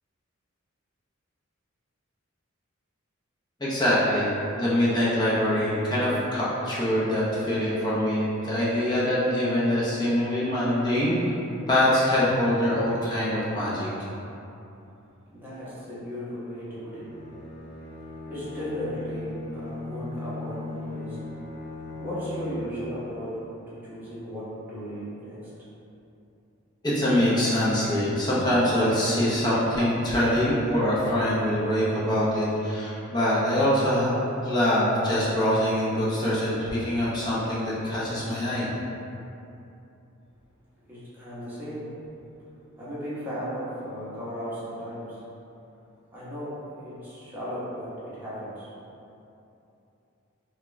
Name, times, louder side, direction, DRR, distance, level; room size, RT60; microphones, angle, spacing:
voice 1, 3.6-11.2 11.7-13.9 26.8-38.7, left 1 dB, 20° left, -9 dB, 0.7 m, -24 dB
voice 2, 15.3-17.3 17.9-21.4 22.0-25.5 40.9-42.1 42.8-45.4 46.1-48.7, equal, 10° right, -11 dB, 1.0 m, -36 dB
Bowed string instrument, 16.9-22.9, left 2 dB, 65° left, 0.9 m, -38 dB
3.7 x 2.4 x 3.1 m, 2.8 s
head